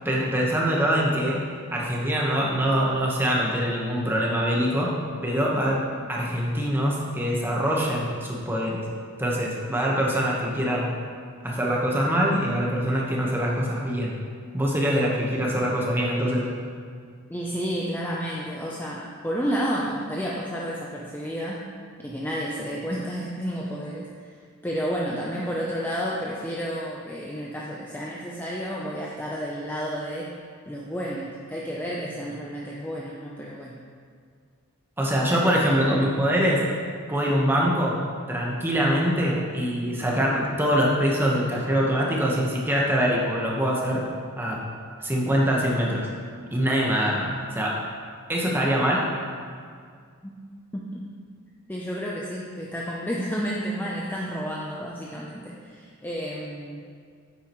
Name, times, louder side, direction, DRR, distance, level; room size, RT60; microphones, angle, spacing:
voice 1, 0.0-1.4 1.7-4.9 5.2-5.8 6.1-8.8 9.2-10.9 11.4-14.2 14.5-16.5 35.0-36.6 37.1-38.0 38.3-44.0 44.4-44.6 45.0-46.1 46.5-47.8 48.3-49.1, equal, 10° right, -3 dB, 1.2 m, -24 dB
voice 2, 17.3-21.7 22.0-24.1 24.6-30.3 30.7-33.8 50.2-50.3 50.7-51.0 51.7-56.8, equal, 10° left, -4 dB, 0.6 m, -31 dB
9.5 x 8.5 x 3.1 m, 2.1 s
head